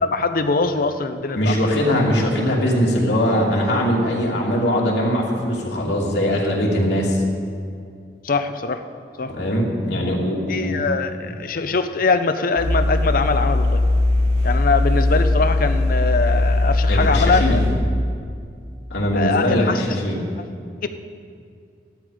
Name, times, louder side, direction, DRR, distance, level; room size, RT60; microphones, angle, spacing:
voice 1, 0.0-1.6 8.2-8.8 9.2-9.3 10.5-13.8 14.4-17.6 19.1-19.9 20.8-20.9, left 4 dB, 55° left, 9 dB, 0.7 m, -22 dB
voice 2, 1.3-7.2 9.3-10.9 16.9-17.7 18.9-20.2, equal, 85° left, -3 dB, 2.7 m, -21 dB
sound 1, 12.6-17.7, left 2 dB, 40° right, 4.1 m, -19 dB
14.0 x 11.5 x 5.0 m, 2.3 s
head